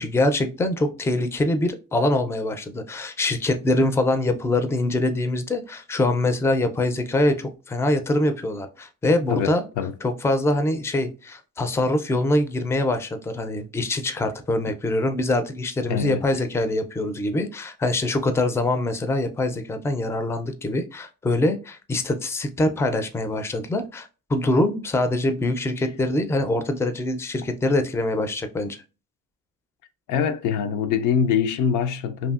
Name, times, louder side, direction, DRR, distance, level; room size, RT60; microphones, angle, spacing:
voice 1, 0.0-9.6 10.0-28.8, left 1 dB, 10° left, 0.3 m, -24 dB
voice 2, 9.3-9.9 15.9-16.2 30.1-32.3, left 7 dB, 85° left, 0.4 m, -24 dB
2.7 x 2.6 x 2.3 m
cardioid pair, 90°, 30 cm